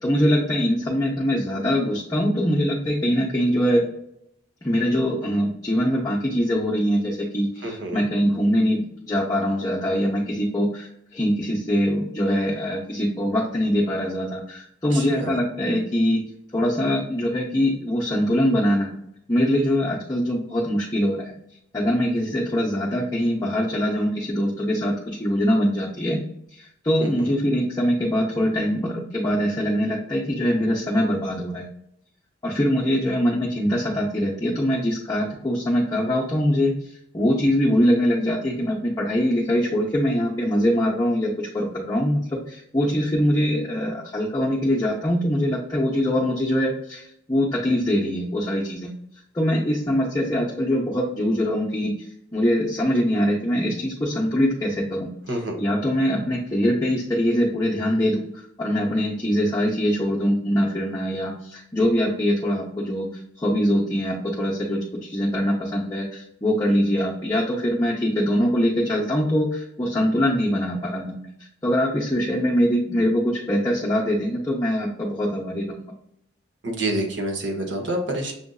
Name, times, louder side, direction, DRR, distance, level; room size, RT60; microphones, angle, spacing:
voice 1, 0.0-3.9 4.6-16.2 16.5-18.9 19.3-21.3 21.7-26.2 26.5-31.6 32.4-36.7 37.1-48.9 49.3-55.1 55.6-63.1 63.4-71.3 71.6-75.8, equal, 20° left, -5 dB, 0.7 m, -23 dB
voice 2, 7.6-8.1 14.9-15.4 27.0-27.3 55.3-55.5 76.6-78.3, right 1 dB, 65° right, 2 dB, 1.0 m, -28 dB
6.9 x 2.5 x 2.3 m, 0.76 s
head